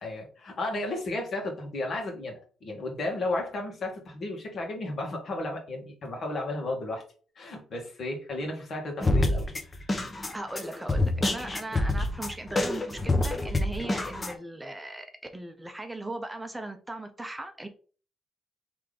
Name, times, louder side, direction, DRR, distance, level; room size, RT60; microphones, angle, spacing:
voice 1, 0.0-7.0 7.4-9.5, left 2 dB, 55° left, 1.8 m, -33 dB
sound 1, 9.0-14.3, left 2 dB, 25° left, 0.9 m, -27 dB
voice 2, 10.3-15.1 15.3-17.7, right 2 dB, 15° right, 0.7 m, -38 dB
3.6 x 3.4 x 3.5 m
supercardioid pair, 70°, 0 cm